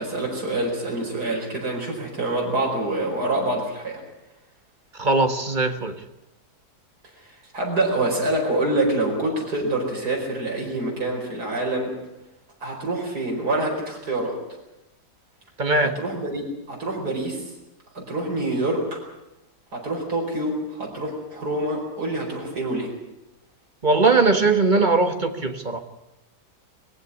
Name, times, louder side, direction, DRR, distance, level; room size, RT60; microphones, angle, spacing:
voice 1, 0.0-4.0 7.5-11.9 12.6-14.4 16.0-17.4 17.9-19.0 19.7-22.9, right 2 dB, 85° right, -1 dB, 5.5 m, -26 dB
voice 2, 5.0-6.0 15.6-15.9 23.8-25.8, right 3 dB, 30° right, 8 dB, 1.4 m, -20 dB
20.5 x 15.0 x 9.8 m, 0.94 s
omnidirectional pair, 1.6 m